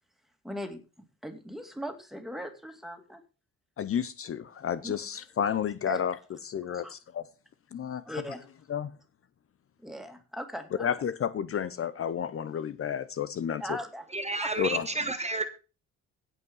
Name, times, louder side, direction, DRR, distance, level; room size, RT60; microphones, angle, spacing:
voice 1, 0.4-3.2 4.8-5.0 5.8-6.0 6.7-6.9 8.0-8.4 9.8-10.9 13.6-14.1 14.4-14.6, equal, ahead, 6 dB, 2.5 m, -39 dB
voice 2, 3.8-6.1 6.4-7.2 7.7-8.2 8.7-8.9 10.8-13.8 14.6-14.9, left 8 dB, 45° left, 15 dB, 0.7 m, -31 dB
voice 3, 14.1-15.5, right 3 dB, 20° right, 9 dB, 1.2 m, -30 dB
16.5 x 5.6 x 5.5 m, 0.33 s
cardioid pair, 90°, 30 cm